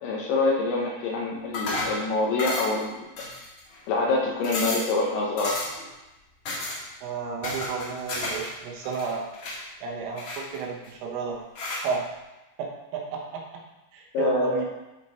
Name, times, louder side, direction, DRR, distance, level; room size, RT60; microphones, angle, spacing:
voice 1, 0.0-2.9 3.2-3.3 3.9-5.6 14.1-14.6, left 3 dB, 75° left, -2 dB, 3.1 m, -25 dB
sound 1, 1.5-2.0 2.4-2.8 3.2-3.8 4.1-4.2 4.4-4.9 5.4-5.8 6.4-6.8 7.4-8.5 8.8-9.6 10.2-10.9 11.5-11.9, left 2 dB, 50° left, 2.4 m, -32 dB
voice 2, 7.0-9.3 9.8-11.4 11.8-12.1 12.6-13.6 13.9-14.7, right 5 dB, 75° right, 0 dB, 3.6 m, -32 dB
13.0 x 4.3 x 4.4 m, 1.0 s
omnidirectional pair, 5.9 m